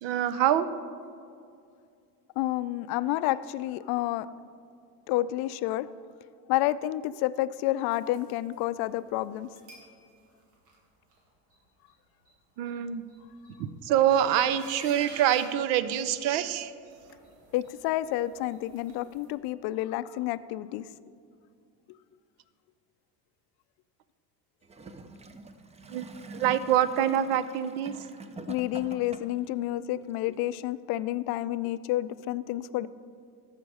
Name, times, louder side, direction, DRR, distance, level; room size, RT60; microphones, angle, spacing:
voice 1, 0.0-0.7 12.6-13.0 13.8-16.7 25.9-28.0, right 10 dB, 70° right, 14 dB, 0.7 m, -25 dB
voice 2, 2.4-4.3 5.1-5.9 6.5-9.5 17.5-20.9 28.5-32.9, left 15 dB, 60° left, 16 dB, 0.5 m, -29 dB
sound 1, 7.9-8.8 9.4-10.0 10.3-10.8 11.1-11.2 11.5-11.6 11.9-12.0 12.3-12.4 12.7-12.8 13.0-13.6 14.4-16.5 16.8-19.3, right 3 dB, 90° right, 2.1 m, -50 dB
Gurgling / Toilet flush, 24.6-29.5 30.3-30.4, right 2 dB, 15° right, 0.5 m, -45 dB
14.0 x 5.2 x 4.8 m, 2.4 s
supercardioid pair, 95°, 45 cm